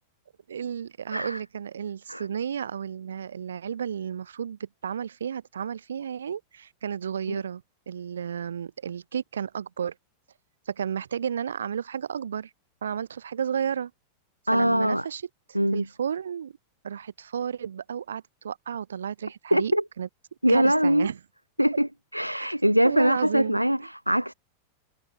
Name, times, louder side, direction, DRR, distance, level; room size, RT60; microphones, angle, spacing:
voice 1, 0.5-9.9 10.7-12.5 12.8-13.9 14.5-15.2 15.5-16.5 16.8-19.7 20.0-20.1 20.5-21.2 22.8-23.9, right 8 dB, 65° right, 4.5 m, -32 dB
voice 2, 14.5-15.1 15.5-15.9 19.5-19.8 20.4-21.1 21.6-24.3, equal, 90° right, 0.4 m, -23 dB
figure-of-eight pair, 90°, 0 cm